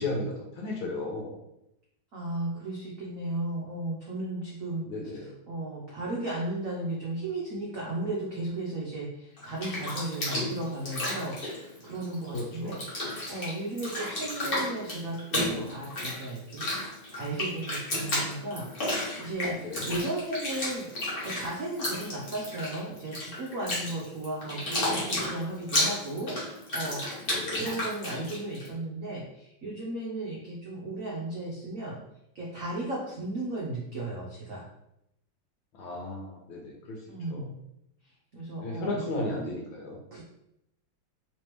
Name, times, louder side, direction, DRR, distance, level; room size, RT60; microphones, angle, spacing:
voice 1, 0.0-1.3 4.9-5.3 12.3-12.8 19.6-19.9 27.3-27.7 35.7-37.0 37.3-37.5 38.6-40.0, left 2 dB, 75° left, -1 dB, 1.4 m, -34 dB
voice 2, 2.1-4.9 5.2-12.8 13.3-16.7 17.1-19.5 19.8-32.0 32.3-34.6 37.1-37.6 38.3-39.1 40.1-40.2, right 2 dB, 70° right, -4 dB, 0.7 m, -35 dB
Bathtub (filling or washing), 9.4-12.4 12.7-28.7, left 1 dB, 40° left, 0.8 m, -32 dB
3.3 x 3.3 x 3.0 m, 0.82 s
omnidirectional pair, 2.3 m